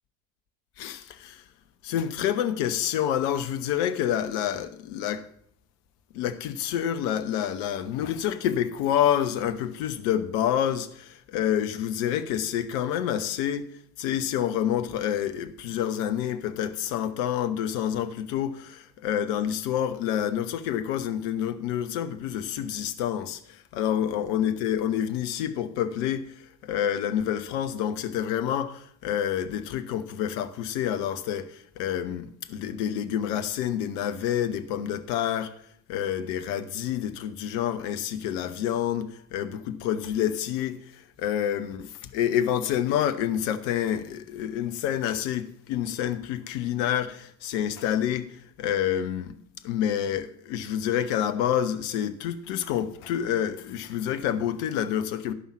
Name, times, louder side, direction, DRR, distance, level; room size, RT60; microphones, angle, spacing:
voice 1, 0.8-1.4 1.8-5.2 6.1-13.7 14.0-26.2 26.6-35.5 35.9-48.3 48.6-55.3, left 10 dB, 60° left, 1.1 m, -28 dB
12.5 x 5.6 x 7.2 m
figure-of-eight pair, 65°, 42 cm